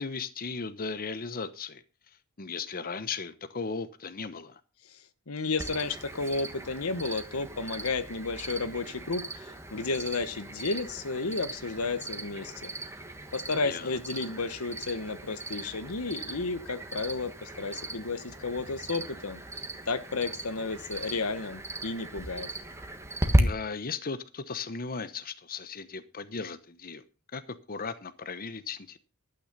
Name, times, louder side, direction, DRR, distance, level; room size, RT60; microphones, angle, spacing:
voice 1, 0.0-1.8 2.4-4.6 13.6-14.0 23.4-27.0 27.3-29.0, left 4 dB, 45° left, 12 dB, 0.9 m, -36 dB
voice 2, 4.8-12.7 13.3-19.4 19.9-22.5, left 3 dB, 85° left, 12 dB, 1.1 m, -32 dB
Cricket, 5.6-23.4, right 1 dB, 15° right, 1.5 m, -36 dB
12.0 x 9.3 x 5.4 m, 0.34 s
head